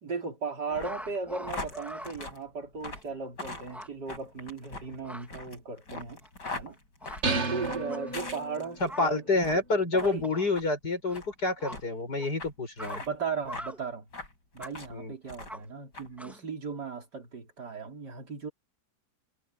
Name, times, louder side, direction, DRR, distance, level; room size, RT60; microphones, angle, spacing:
voice 1, 0.0-6.2 6.5-6.8 7.5-9.4 9.9-10.3 13.0-14.1 14.5-18.5, right 5 dB, 80° right, 4.3 m, -37 dB
sound 1, 0.7-9.0 9.3-9.6 10.0-10.1 10.5-10.7 11.1-11.3 11.7-11.8 12.4-12.5 12.8-13.1 13.5-13.7 14.1-14.9 15.3-15.6 15.9-16.1, left 2 dB, 90° left, 7.8 m, -41 dB
sound 2, 0.8-2.1 2.9-3.0 3.4-3.5 3.7-3.9 4.8-5.3 5.9-6.7 7.0-7.2 7.9-8.2 8.9-9.2 10.2-10.5 11.1-11.2 11.6-11.8 12.2-12.3 12.8-13.0 13.5-13.8 14.6-14.7 15.5-15.6 16.2-16.5, equal, ahead, 3.5 m, -43 dB
sound 3, 7.2-8.9, right 3 dB, 45° right, 1.8 m, -32 dB
voice 2, 8.8-13.0 14.9-15.1, left 3 dB, 70° left, 8.0 m, -28 dB
omnidirectional pair, 1.8 m